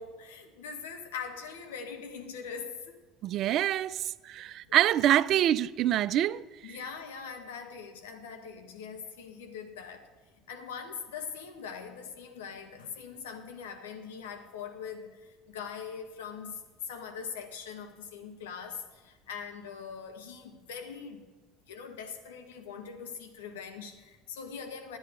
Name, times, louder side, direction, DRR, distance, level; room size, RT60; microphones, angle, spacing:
voice 1, 0.0-2.8 4.7-4.8 6.6-10.1 10.5-21.3 21.7-25.0, left 6 dB, 80° left, 1.3 m, -42 dB
voice 2, 3.2-6.4 6.7-6.8, right 12 dB, 55° right, 0.4 m, -26 dB
10.5 x 9.5 x 5.0 m
hypercardioid pair, 75°, 0 cm